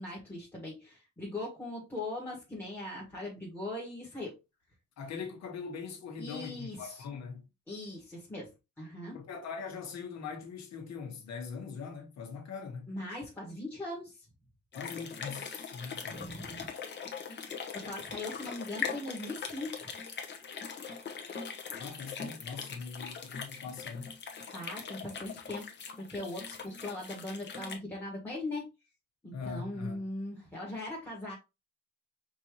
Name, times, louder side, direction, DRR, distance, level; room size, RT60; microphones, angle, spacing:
voice 1, 0.0-4.3 6.2-7.0 7.7-8.5 8.8-9.2 12.9-14.3 16.1-16.7 17.7-19.9 24.5-25.6 26.0-28.7 29.2-31.3, left 1 dB, 5° left, 1.4 m, -40 dB
voice 2, 5.0-7.4 9.1-12.9 14.7-16.2 21.7-24.1 29.3-30.0, left 5 dB, 60° left, 1.4 m, -41 dB
sound 1, 14.7-27.8, left 6 dB, 40° left, 0.9 m, -41 dB
5.4 x 2.9 x 3.1 m
cardioid pair, 155°, 29 cm